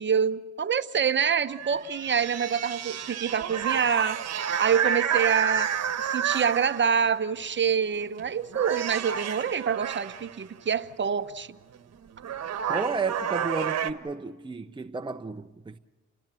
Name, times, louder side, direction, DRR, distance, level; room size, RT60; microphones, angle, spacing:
voice 1, 0.0-4.2 4.6-11.5, right 7 dB, 40° right, 1.0 m, -26 dB
sound 1, 1.5-7.1 7.9-8.2 8.5-10.4 11.7-11.8 12.2-13.9, right 8 dB, 55° right, 1.5 m, -30 dB
voice 2, 12.7-15.8, right 4 dB, 15° right, 0.8 m, -32 dB
29.5 x 20.0 x 7.6 m
cardioid pair, 90°, 30 cm